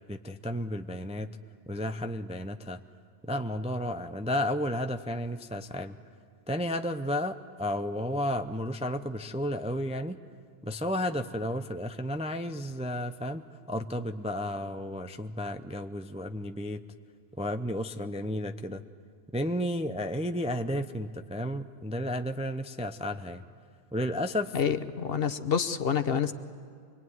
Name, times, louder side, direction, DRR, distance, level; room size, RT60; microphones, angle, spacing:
voice 1, 0.1-1.3 1.7-2.8 3.2-6.0 6.5-10.2 10.6-13.4 13.7-16.8 17.4-18.8 19.3-23.4 23.9-24.6, left 1 dB, 10° right, 8 dB, 0.5 m, -32 dB
voice 2, 24.5-26.3, left 7 dB, 55° left, 11 dB, 1.1 m, -28 dB
25.0 x 22.0 x 9.4 m, 2.3 s
omnidirectional pair, 1.2 m